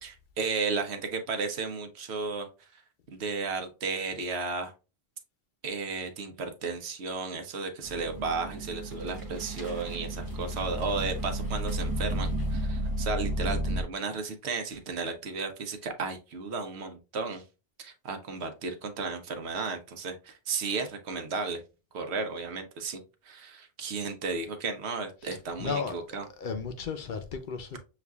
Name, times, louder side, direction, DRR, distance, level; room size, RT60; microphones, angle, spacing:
voice 1, 0.0-2.5 2.7-2.8 3.1-4.7 5.6-17.4 17.8-21.6 21.9-23.0 23.3-26.3, right 4 dB, 85° right, 1.0 m, -34 dB
sound 1, 7.8-13.8, equal, 25° right, 0.7 m, -32 dB
voice 2, 25.2-27.8, left 5 dB, 60° left, 0.6 m, -35 dB
6.8 x 2.4 x 2.3 m
omnidirectional pair, 1.1 m